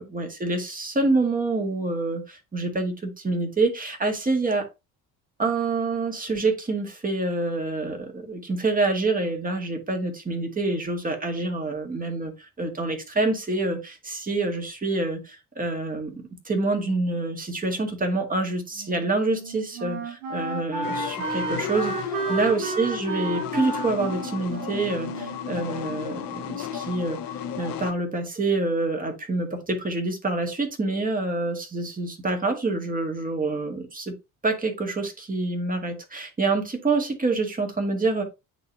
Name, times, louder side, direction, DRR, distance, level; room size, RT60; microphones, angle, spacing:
voice 1, 0.0-4.7 5.4-27.2 27.6-34.1 34.4-38.2, right 3 dB, 20° right, 4 dB, 1.9 m, -27 dB
Wind instrument woodwind instrument, 18.8-26.1, right 3 dB, 60° right, 1.5 m, -32 dB
sound 1, 20.8-27.9, left 9 dB, 50° left, 1.1 m, -34 dB
9.1 x 4.0 x 2.7 m, 0.25 s
figure-of-eight pair, 55°, 45 cm